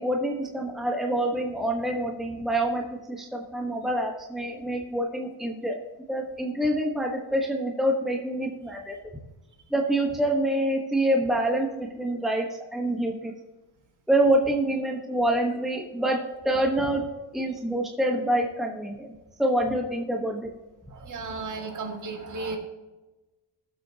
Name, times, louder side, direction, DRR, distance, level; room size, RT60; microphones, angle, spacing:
voice 1, 0.0-5.7 6.1-8.9 9.7-12.5 12.7-13.3 14.1-16.2 16.4-17.1 17.3-19.1 19.4-20.5, right 1 dB, ahead, 0 dB, 1.1 m, -26 dB
voice 2, 20.9-22.6, right 3 dB, 40° right, 2 dB, 2.1 m, -34 dB
20.5 x 7.8 x 2.8 m, 1.1 s
cardioid pair, 155°, 45 cm